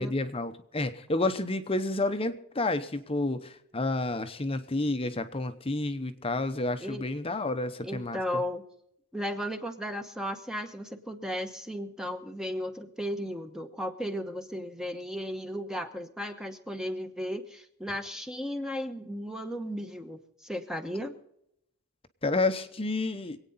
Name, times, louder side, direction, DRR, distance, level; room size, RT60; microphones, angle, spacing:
voice 1, 0.0-8.2 22.2-23.4, left 2 dB, 25° left, 9 dB, 0.8 m, -30 dB
voice 2, 7.8-8.6 9.1-21.1, equal, 5° right, 6 dB, 1.0 m, -35 dB
25.0 x 9.0 x 4.1 m, 0.78 s
head